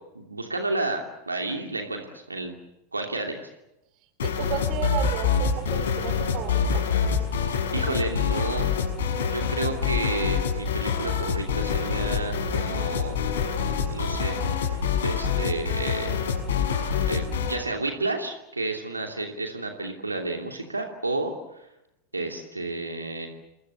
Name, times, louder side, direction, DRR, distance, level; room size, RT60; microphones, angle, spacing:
voice 1, 0.1-2.6 2.9-3.5 7.4-8.7 9.3-13.2 13.9-14.8 15.0-16.1 17.1-21.3 22.1-23.3, right 2 dB, 80° right, 3 dB, 2.8 m, -31 dB
sound 1, 4.2-17.6, left 6 dB, 60° left, 6.6 m, -26 dB
voice 2, 4.2-6.8, right 9 dB, 40° right, 10 dB, 4.4 m, -33 dB
28.0 x 23.0 x 7.0 m, 0.90 s
figure-of-eight pair, 90°, 0 cm